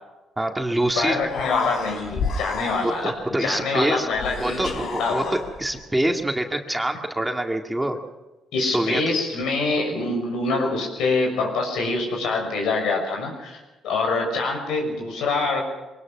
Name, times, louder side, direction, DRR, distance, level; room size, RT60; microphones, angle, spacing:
voice 1, 0.4-1.2 2.8-4.1 4.4-8.0 8.6-9.1, right 1 dB, 10° right, 3 dB, 2.2 m, -25 dB
Human voice, 0.7-0.9 1.1-3.2 4.1-5.8, left 4 dB, 70° left, 4.2 m, -30 dB
voice 2, 1.0-4.6 5.0-5.4 6.7-6.8 8.5-15.7, left 3 dB, 85° left, 2 dB, 6.2 m, -25 dB
23.5 x 19.5 x 6.1 m, 1.1 s
cardioid pair, 90°, 0 cm